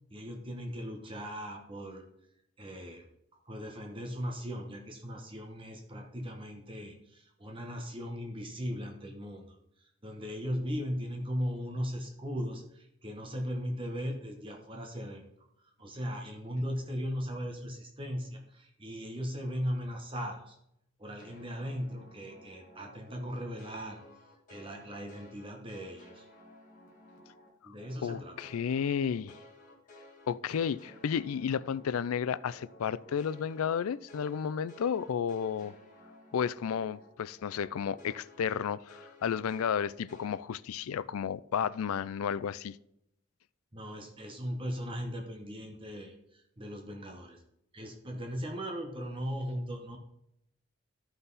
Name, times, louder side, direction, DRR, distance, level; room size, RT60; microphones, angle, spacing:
voice 1, 0.1-2.1 2.6-3.0 3.3-15.2 15.6-20.6 21.0-24.0 24.5-26.3 27.6-28.4 43.7-47.4 47.7-50.0, equal, 25° right, 1.1 m, -38 dB
sound 1, 21.2-27.5 27.8-37.1 37.4-40.4, left 1 dB, 35° left, 1.9 m, -55 dB
voice 2, 28.0-29.4 30.3-35.7 36.3-42.8, left 7 dB, 85° left, 0.4 m, -32 dB
13.0 x 5.7 x 4.1 m
head